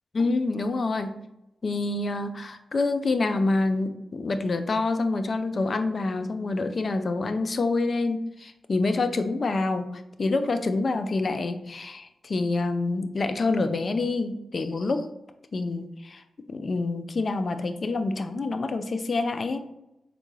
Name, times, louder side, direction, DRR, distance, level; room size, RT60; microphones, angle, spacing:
voice 1, 0.1-1.2 1.6-15.1 15.5-16.2 16.5-19.6, left 3 dB, 55° left, 9 dB, 0.3 m, -27 dB
3.6 x 2.2 x 3.1 m, 0.91 s
cardioid pair, 50°, 0 cm